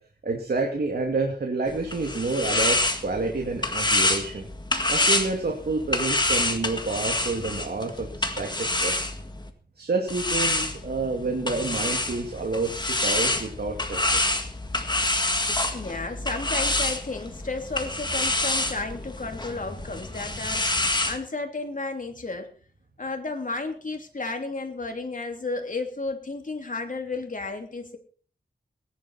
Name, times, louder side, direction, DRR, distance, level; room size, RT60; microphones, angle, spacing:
voice 1, 0.2-4.5 4.9-9.0 9.8-14.2, right 3 dB, 70° right, 1 dB, 2.4 m, -29 dB
sound 1, 1.7-9.5 10.1-21.2, left 2 dB, 25° left, 1.9 m, -27 dB
voice 2, 15.7-22.5 23.0-28.0, left 3 dB, 50° left, 4 dB, 3.0 m, -33 dB
18.5 x 11.0 x 4.3 m, 0.42 s
wide cardioid pair, 90°, 17 cm